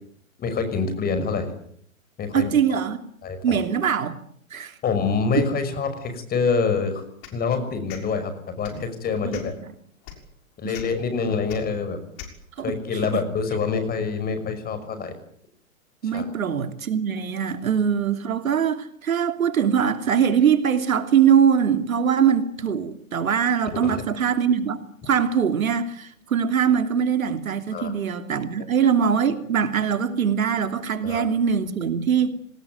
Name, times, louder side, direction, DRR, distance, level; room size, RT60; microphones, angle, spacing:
voice 1, 0.4-1.5 2.2-2.5 3.2-3.6 4.8-7.0 7.3-9.5 10.6-12.0 12.6-15.2 16.1-16.3 23.7-24.1 27.7-27.9 31.0-31.3, left 5 dB, 20° left, 9 dB, 6.0 m, -26 dB
voice 2, 2.3-3.0 3.4-4.1 4.5-4.7 5.3-5.4 9.2-9.4 10.6-10.7 12.6-12.7 13.1-13.2 16.0-24.8 25.0-32.3, right 7 dB, 70° right, 8 dB, 3.1 m, -22 dB
sound 1, 7.2-7.4 7.9-8.0 8.6-8.8 9.3-9.6 10.0-10.2 10.7-10.8 11.5-11.6 12.2-12.3, left 10 dB, 40° left, 6.4 m, -39 dB
26.5 x 20.0 x 9.3 m, 0.67 s
hypercardioid pair, 120°, 42 cm